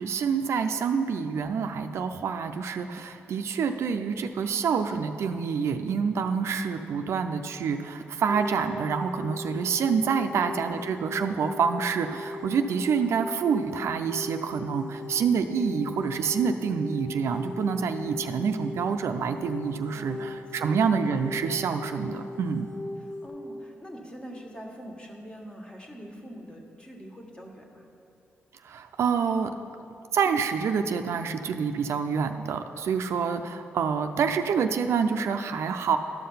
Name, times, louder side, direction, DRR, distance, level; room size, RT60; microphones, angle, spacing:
voice 1, 0.0-22.7 28.7-29.5 30.1-36.0, right 6 dB, 75° right, 7 dB, 0.5 m, -27 dB
sound 1, 8.3-23.3, left 2 dB, 80° left, 1.2 m, -39 dB
voice 2, 10.1-10.7 19.9-20.9 23.0-27.8, equal, 20° left, 1 dB, 1.6 m, -44 dB
12.0 x 5.7 x 5.6 m, 2.7 s
cardioid pair, 65°, 5 cm